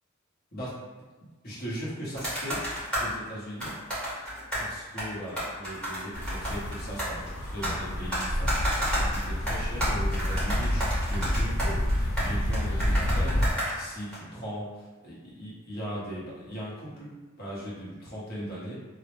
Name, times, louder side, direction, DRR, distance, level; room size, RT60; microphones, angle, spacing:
voice 1, 1.4-2.6 3.0-3.7 4.6-18.7, equal, 50° left, -7 dB, 0.8 m, -38 dB
sound 1, 2.1-3.1 3.6-4.7 5.0-7.8 8.1-14.1, equal, 5° left, 0.9 m, -32 dB
sound 2, 6.1-13.5, equal, 85° left, 0.4 m, -28 dB
2.0 x 2.0 x 3.0 m, 1.3 s
head